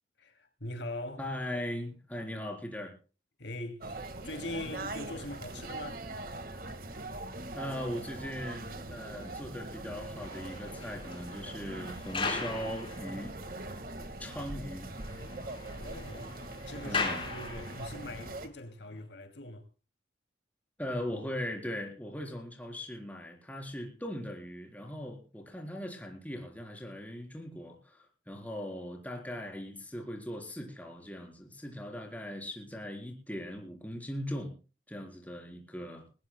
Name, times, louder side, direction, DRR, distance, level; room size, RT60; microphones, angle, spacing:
voice 1, 0.2-1.2 3.4-6.0 15.6-16.3 16.7-19.7, left 1 dB, 75° left, 2.7 m, -42 dB
voice 2, 1.2-2.9 4.6-4.7 7.5-13.4 14.2-14.9 16.9-17.2 20.8-34.5 34.9-36.0, equal, 10° left, 3.9 m, -39 dB
sound 1, 3.8-18.5, right 2 dB, 50° right, 1.8 m, -42 dB
sound 2, 10.0-13.7 14.0-14.1 14.5-14.6 14.8-18.1 18.8-19.0, left 4 dB, 30° left, 4.6 m, -39 dB
21.5 x 19.0 x 2.2 m
head